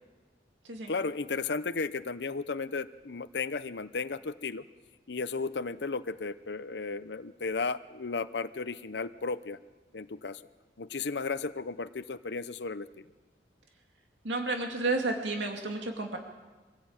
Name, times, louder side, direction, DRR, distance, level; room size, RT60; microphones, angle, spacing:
voice 1, 0.9-4.6 5.1-9.6 9.9-10.4 10.8-13.0, left 4 dB, 75° left, 12 dB, 0.8 m, -34 dB
voice 2, 14.2-16.2, right 2 dB, 90° right, 2 dB, 2.5 m, -31 dB
25.0 x 17.0 x 8.9 m, 1.3 s
head